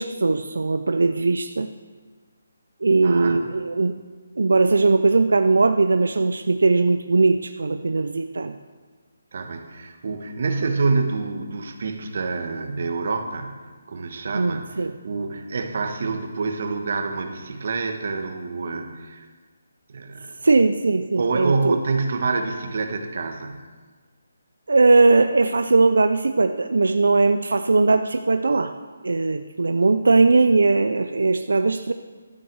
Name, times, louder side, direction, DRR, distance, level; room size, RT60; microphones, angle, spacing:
voice 1, 0.0-1.7 2.8-3.9 4.4-8.5 14.3-14.9 20.4-21.8 24.7-28.7 29.0-31.9, right 3 dB, 85° right, 8 dB, 0.5 m, -19 dB
voice 2, 3.0-3.5 9.3-13.5 13.9-19.2 19.9-20.4 21.1-23.5, right 4 dB, 50° right, 5 dB, 1.3 m, -27 dB
12.0 x 9.3 x 4.7 m, 1.4 s
hypercardioid pair, 170°, 0 cm